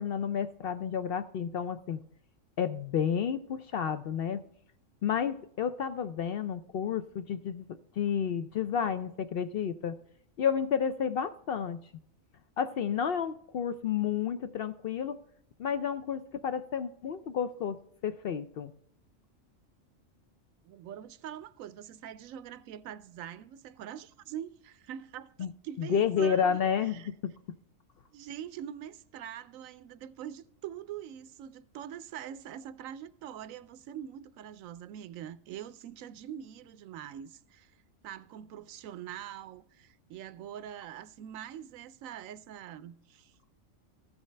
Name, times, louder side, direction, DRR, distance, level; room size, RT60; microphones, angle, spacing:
voice 1, 0.0-2.0 2.6-4.4 5.0-7.7 8.0-10.0 10.4-11.9 12.6-15.2 15.6-17.8 18.0-18.7 25.4-25.5 25.8-27.3, left 7 dB, 65° left, 0.6 m, -31 dB
voice 2, 20.6-27.1 28.1-37.8 38.0-43.4, right 10 dB, 90° right, 1.0 m, -44 dB
13.5 x 7.1 x 3.2 m
omnidirectional pair, 1.4 m